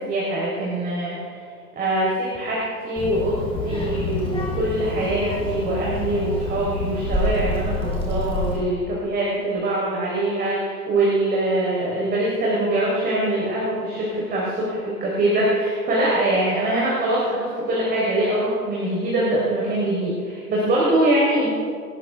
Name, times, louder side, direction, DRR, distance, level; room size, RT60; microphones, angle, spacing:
voice 1, 0.0-1.4 1.7-21.5, right 1 dB, 20° right, -6 dB, 4.0 m, -23 dB
Child speech kid speaking, 3.0-8.6, left 1 dB, 10° left, 3.4 m, -27 dB
28.5 x 13.0 x 3.5 m, 2.3 s
figure-of-eight pair, 105°, 47 cm